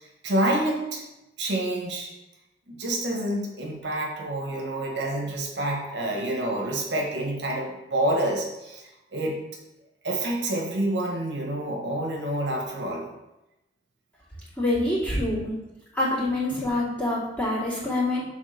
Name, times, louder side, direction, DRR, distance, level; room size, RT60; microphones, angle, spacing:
voice 1, 0.2-1.0 1.4-2.1 2.7-9.4 10.0-13.1, right 1 dB, 80° right, -1 dB, 1.4 m, -28 dB
voice 2, 14.6-15.6 15.9-18.2, left 1 dB, 10° left, -9 dB, 2.5 m, -26 dB
6.3 x 3.6 x 5.1 m, 0.95 s
head